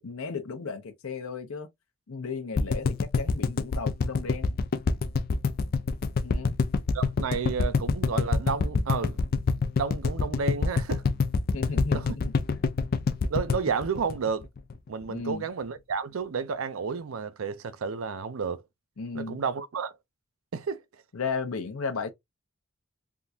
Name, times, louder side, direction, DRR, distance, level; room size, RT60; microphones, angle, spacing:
voice 1, 0.0-1.7 2.1-4.6 6.2-6.5 11.5-12.7 15.1-15.4 19.0-19.4 21.1-22.1, left 4 dB, 85° left, 0.7 m, -35 dB
sound 1, 2.6-14.7 15.0-15.1 15.3-15.4, left 4 dB, 45° left, 0.4 m, -25 dB
voice 2, 6.9-9.2 9.8-11.0 11.9-12.2 13.3-14.5 14.9-18.6 19.1-20.0 20.5-20.8, right 5 dB, 75° right, 0.5 m, -31 dB
3.6 x 2.4 x 2.7 m
head